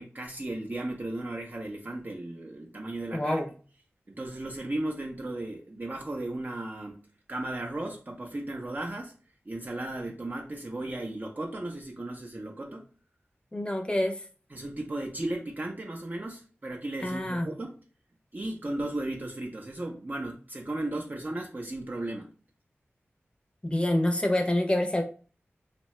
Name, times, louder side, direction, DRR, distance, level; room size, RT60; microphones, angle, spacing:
voice 1, 0.0-3.4 4.1-9.1 9.5-12.8 14.5-17.7 18.3-22.3, right 1 dB, 40° right, 0 dB, 0.6 m, -35 dB
voice 2, 3.1-3.5 13.5-14.2 17.0-17.5 23.6-25.0, left 1 dB, 25° left, 4 dB, 0.6 m, -26 dB
2.8 x 2.2 x 3.1 m, 0.38 s
cardioid pair, 45°, 5 cm